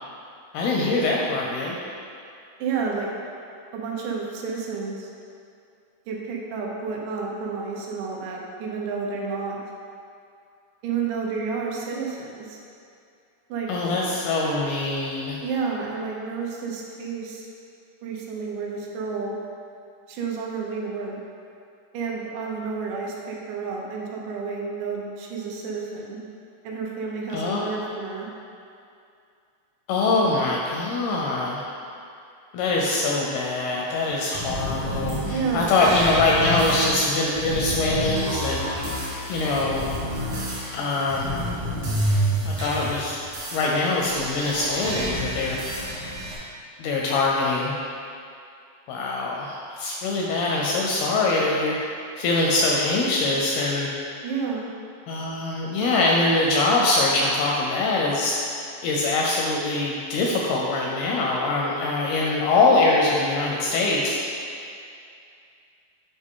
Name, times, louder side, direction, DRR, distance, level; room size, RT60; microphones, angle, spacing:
voice 1, 0.5-1.8 13.7-15.4 27.3-27.7 29.9-31.6 32.5-38.6 39.3-39.9 40.7-41.4 42.5-43.2 43.5-45.6 46.8-47.8 48.9-51.8 52.2-53.9 55.1-58.4 58.8-64.2, left 2 dB, 80° left, -2 dB, 2.3 m, -23 dB
voice 2, 2.6-3.1 3.7-5.1 6.1-9.6 10.8-12.6 13.5-13.7 15.4-17.5 18.0-19.4 20.1-21.2 21.9-26.2 26.6-28.3 35.3-35.9 54.2-54.7, right 5 dB, 80° right, -2 dB, 3.2 m, -30 dB
sound 1, 34.3-46.3, equal, 65° right, 1.3 m, -29 dB
8.6 x 5.1 x 3.7 m, 2.5 s
omnidirectional pair, 5.1 m